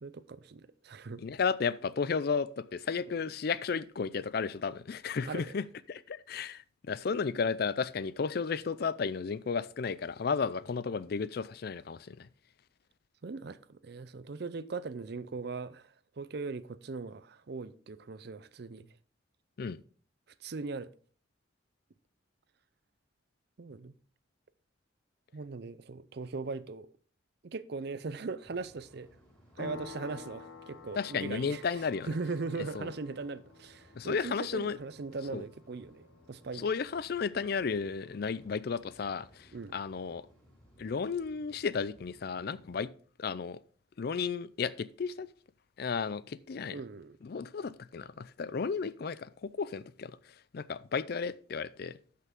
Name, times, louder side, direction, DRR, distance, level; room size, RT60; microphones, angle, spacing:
voice 1, 0.0-1.2 5.2-5.5 13.2-15.9 16.2-18.9 20.4-20.9 23.6-23.9 25.3-26.9 27.4-29.1 29.6-36.6 39.5-39.8 46.7-47.2, right 4 dB, 55° right, 0.5 m, -39 dB
voice 2, 1.2-12.3 19.6-19.8 31.0-32.1 32.7-32.9 34.0-34.8 35.3-35.4 36.6-39.3 39.7-40.2 40.8-42.9 43.2-43.6 44.0-45.3 45.8-46.8 47.2-50.1 50.5-51.9, left 5 dB, 50° left, 0.4 m, -33 dB
sound 1, 28.4-42.8, equal, 5° left, 4.7 m, -62 dB
sound 2, 29.6-37.9, left 4 dB, 75° left, 1.0 m, -51 dB
12.0 x 5.7 x 3.6 m
head